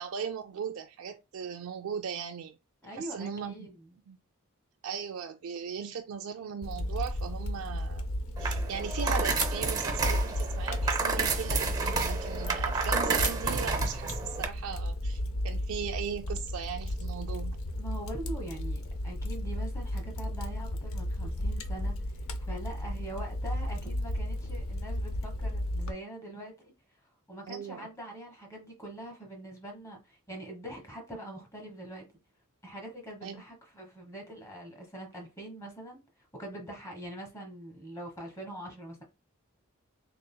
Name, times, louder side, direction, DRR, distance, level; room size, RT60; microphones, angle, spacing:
voice 1, 0.0-2.6 2.9-3.7 4.1-4.2 4.8-8.1 8.4-17.6 27.5-27.9 33.2-33.4, right 7 dB, 85° right, 0.4 m, -38 dB
voice 2, 2.8-4.0 17.8-26.5 27.3-32.1 32.6-36.0 36.3-39.0, right 1 dB, 15° left, 1.2 m, -43 dB
Fire, 6.6-25.9, left 1 dB, 70° left, 0.6 m, -33 dB
sound 1, 8.4-14.5, right 4 dB, 20° right, 0.5 m, -31 dB
3.9 x 3.5 x 2.2 m
head